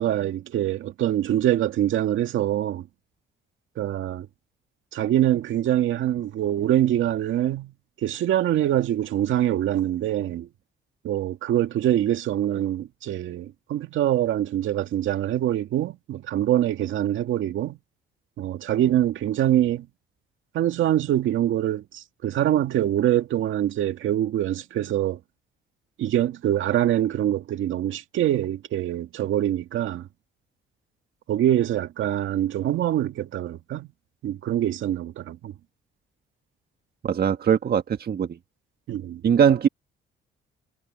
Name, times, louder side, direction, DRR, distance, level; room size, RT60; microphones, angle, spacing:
voice 1, 0.0-2.9 3.8-4.3 4.9-7.7 8.0-10.5 11.0-17.8 18.4-19.9 20.5-25.2 26.0-30.1 31.3-33.9 34.2-35.5 38.9-39.2, right 12 dB, 75° right, 2.1 m, -24 dB
voice 2, 37.0-38.3 39.2-39.7, right 8 dB, 50° right, 1.5 m, -20 dB
cardioid pair, 90°, 20 cm